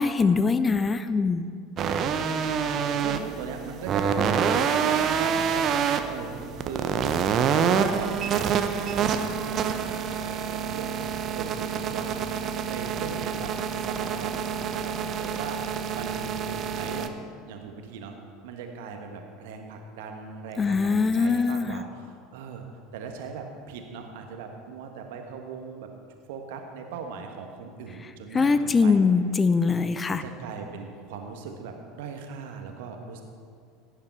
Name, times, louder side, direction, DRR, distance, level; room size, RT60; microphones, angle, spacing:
voice 1, 0.0-1.5 20.6-21.8 28.3-30.2, left 4 dB, 20° left, 12 dB, 0.6 m, -22 dB
sound 1, 1.8-17.1, right 7 dB, 40° right, 0.8 m, -27 dB
voice 2, 2.0-7.2 7.5-12.2 12.6-13.5 13.8-18.2 18.4-22.6 22.9-25.9 26.3-29.0 30.1-33.2, right 5 dB, 60° right, 4 dB, 1.5 m, -39 dB
16.5 x 9.6 x 4.6 m, 2.2 s
figure-of-eight pair, 70°, 0 cm